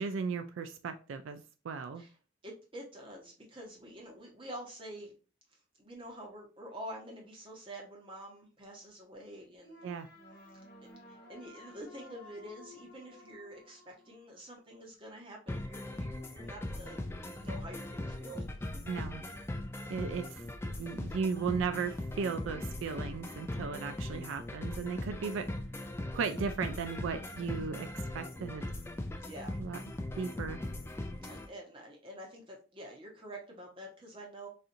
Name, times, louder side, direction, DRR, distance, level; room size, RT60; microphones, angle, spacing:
voice 1, 0.0-2.0 9.8-10.1 18.9-19.2 19.9-20.5 20.8-25.5 26.1-27.9 28.1-28.6 29.6-29.8 30.1-30.6, right 5 dB, 75° right, 0.3 m, -36 dB
voice 2, 2.4-5.1 5.8-9.9 11.1-17.0 17.4-18.4 20.0-20.1 27.4-27.7 29.2-29.8 31.3-34.5, right 1 dB, 25° right, 0.9 m, -47 dB
sound 1, 9.6-14.7, left 2 dB, 50° left, 0.7 m, -54 dB
sound 2, 15.5-31.5, left 1 dB, 10° left, 0.3 m, -40 dB
4.2 x 2.5 x 2.6 m
head